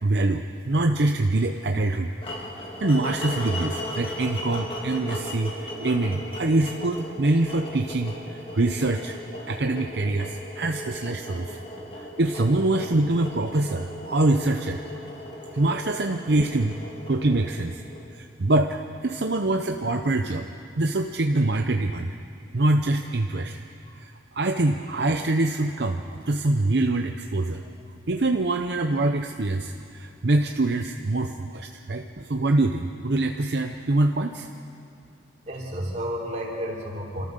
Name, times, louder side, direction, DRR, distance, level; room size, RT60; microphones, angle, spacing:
voice 1, 0.0-2.2 2.8-9.2 9.5-11.6 12.0-14.8 15.5-16.8 17.1-17.8 18.1-20.5 20.8-22.1 22.5-23.6 23.9-27.6 28.1-34.5, right 2 dB, 65° right, 5 dB, 0.7 m, -24 dB
sound 1, 2.2-18.3, left 1 dB, 30° left, 2.2 m, -37 dB
voice 2, 35.4-37.2, equal, 40° right, -2 dB, 3.6 m, -32 dB
28.0 x 13.5 x 6.7 m, 2.6 s
head